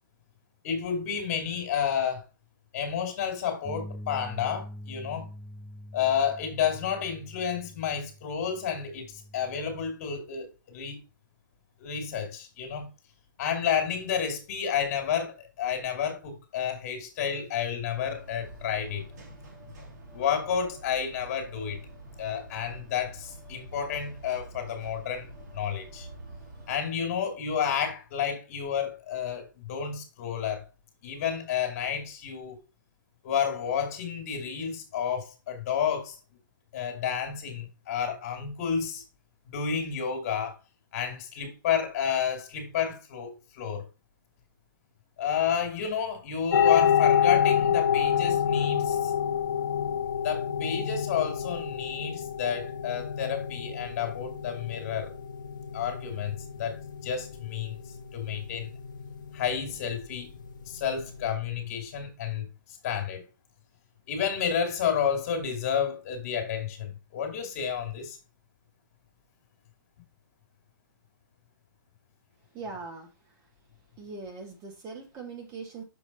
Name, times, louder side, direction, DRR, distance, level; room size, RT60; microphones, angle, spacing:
voice 1, 0.6-2.2 2.7-5.3 5.9-11.0 11.8-12.9 13.4-19.0 20.1-21.8 22.2-25.3 25.5-26.1 26.7-30.6 31.0-32.6 33.2-36.2 36.7-39.0 39.5-40.6 40.9-43.8 45.2-49.1 50.2-55.1 55.7-57.8 58.1-58.7 59.3-60.3 60.6-62.5 62.8-63.2 64.1-68.2, left 8 dB, 45° left, 2.3 m, -30 dB
sound 1, 3.6-9.9, left 1 dB, ahead, 0.8 m, -44 dB
sound 2, 17.9-26.8, right 1 dB, 55° right, 2.7 m, -46 dB
sound 3, 46.5-61.3, left 8 dB, 60° left, 0.9 m, -28 dB
voice 2, 72.4-73.5 74.0-75.8, right 4 dB, 25° right, 1.8 m, -41 dB
6.4 x 5.0 x 4.1 m
figure-of-eight pair, 120°, 11 cm